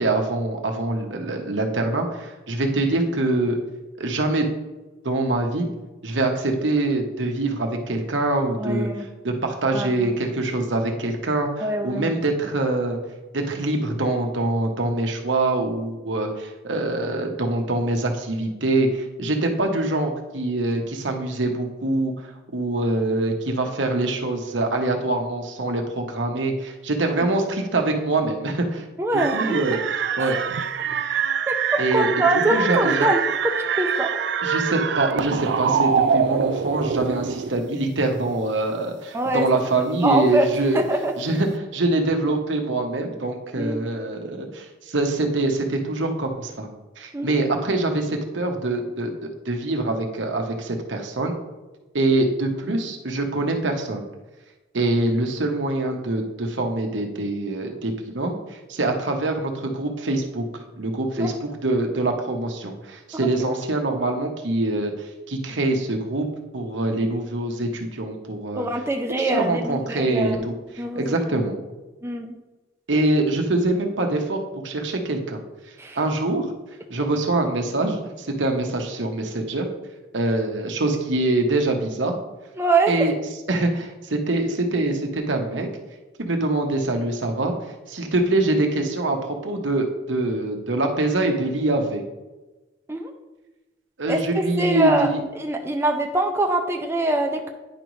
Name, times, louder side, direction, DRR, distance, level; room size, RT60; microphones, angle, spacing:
voice 1, 0.0-3.6 4.0-4.5 5.0-5.7 6.0-8.9 9.2-13.0 13.3-28.8 29.1-29.8 30.2-30.4 31.8-33.1 34.4-40.9 41.2-46.7 47.0-51.3 51.9-54.1 54.7-66.3 66.5-68.7 69.2-71.6 72.9-75.4 76.0-76.5 76.9-79.7 80.1-82.1 82.9-83.1 83.5-85.7 86.2-87.5 87.9-92.0 94.0-95.2, right 2 dB, 85° right, 3 dB, 1.1 m, -24 dB
voice 2, 8.6-9.1 9.7-10.2 11.6-12.1 29.0-29.6 30.2-30.3 31.5-33.2 33.8-34.2 39.1-39.5 39.9-40.5 40.7-41.1 43.6-43.8 47.1-47.3 61.2-61.3 68.6-70.5 70.8-71.1 72.0-72.4 75.8-76.0 82.6-82.9 92.9-93.1 94.1-94.2 94.6-97.5, right 2 dB, 15° right, 2 dB, 0.5 m, -23 dB
sound 1, 29.2-37.5, right 6 dB, 70° right, 0.4 m, -24 dB
9.9 x 5.2 x 3.1 m, 1.1 s
head